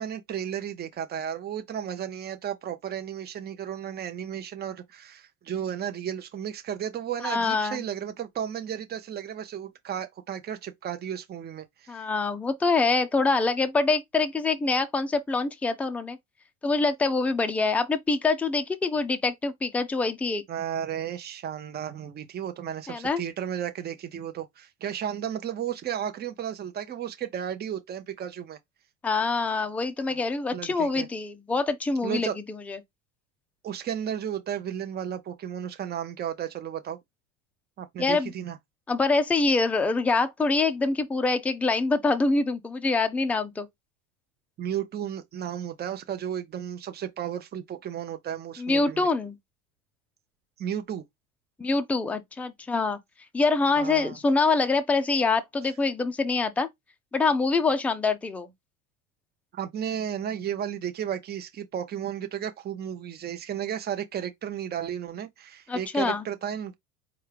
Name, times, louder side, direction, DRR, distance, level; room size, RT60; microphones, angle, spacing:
voice 1, 0.0-12.1 20.5-28.6 30.1-30.2 30.5-31.1 32.0-32.4 33.6-37.0 37.8-38.6 44.6-49.1 50.6-51.0 53.8-54.2 59.5-66.7, right 9 dB, 25° right, 0.7 m, -33 dB
voice 2, 7.2-7.8 11.9-16.2 16.6-20.4 22.9-23.2 29.0-32.3 32.7-32.8 38.0-38.3 38.9-43.7 48.6-49.4 51.6-53.0 53.3-56.7 57.1-58.5 65.7-66.2, left 3 dB, 5° left, 0.4 m, -25 dB
4.3 x 2.4 x 3.3 m
supercardioid pair, 120°, 40 cm